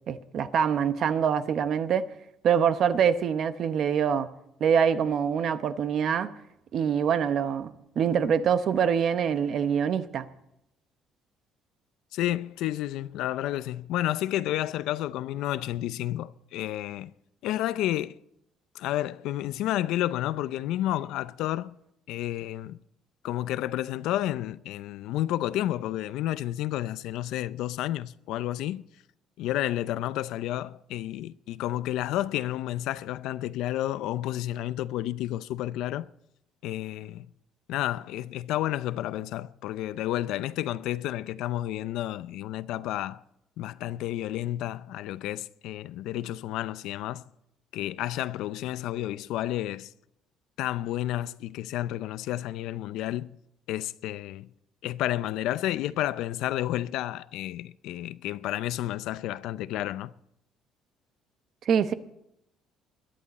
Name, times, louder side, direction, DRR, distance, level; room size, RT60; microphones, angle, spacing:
voice 1, 0.0-2.1 2.4-4.3 4.6-6.3 6.7-10.3 61.7-61.9, right 7 dB, 45° right, 0.8 m, -25 dB
voice 2, 12.1-17.1 17.4-18.2 18.7-21.7 22.1-22.8 23.2-28.8 29.4-36.1 36.6-37.3 37.7-43.2 43.6-47.2 47.7-49.9 50.6-53.4 53.7-54.5 54.8-60.1, left 14 dB, 75° left, 0.5 m, -31 dB
21.5 x 11.0 x 4.2 m
cardioid pair, 165°, 0 cm